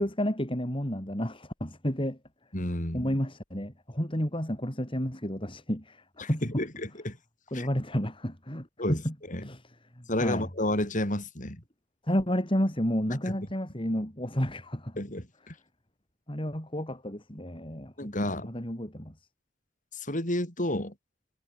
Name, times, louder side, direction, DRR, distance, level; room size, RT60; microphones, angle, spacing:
voice 1, 0.0-2.2 2.9-6.6 7.5-9.1 9.4-9.6 10.0-10.5 12.1-14.9 16.3-19.1, equal, 30° left, 6.2 m, -31 dB
voice 2, 2.5-3.1 6.2-7.2 7.5-7.7 8.8-9.0 9.3-9.5 10.1-11.6 15.0-15.5 18.0-18.5 19.9-20.9, left 1 dB, 45° left, 7.6 m, -31 dB
head